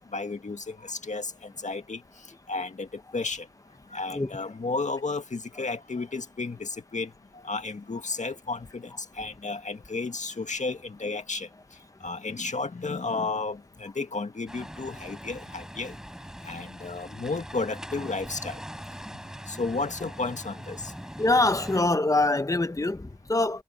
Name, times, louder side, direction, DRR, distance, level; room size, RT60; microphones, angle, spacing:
voice 1, 0.1-2.0 2.5-2.9 3.1-3.5 3.9-7.1 7.4-8.9 9.2-11.5 12.0-16.0 16.4-18.6 19.5-20.9, left 3 dB, 60° left, 2.0 m, -32 dB
sound 1, 14.5-21.8, equal, 5° right, 4.9 m, -41 dB
voice 2, 21.2-23.6, left 2 dB, 25° left, 1.2 m, -24 dB
wide cardioid pair, 65°, 14 cm